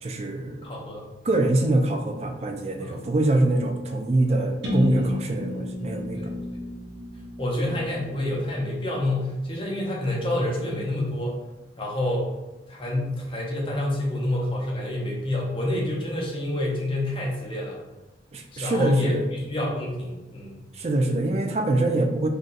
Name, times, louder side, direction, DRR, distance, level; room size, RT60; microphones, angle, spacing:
voice 1, 0.0-0.7 1.2-6.2 18.3-19.2 20.7-22.3, right 2 dB, 35° right, 4 dB, 0.3 m, -24 dB
voice 2, 0.6-1.1 2.8-3.0 6.1-6.6 7.4-11.4 11.8-12.3 12.7-17.8 18.5-20.6, left 1 dB, 30° left, -3 dB, 0.6 m, -28 dB
sound 1, 4.6-8.5, equal, 90° right, 0.9 m, -31 dB
2.5 x 2.2 x 3.9 m, 1.0 s
head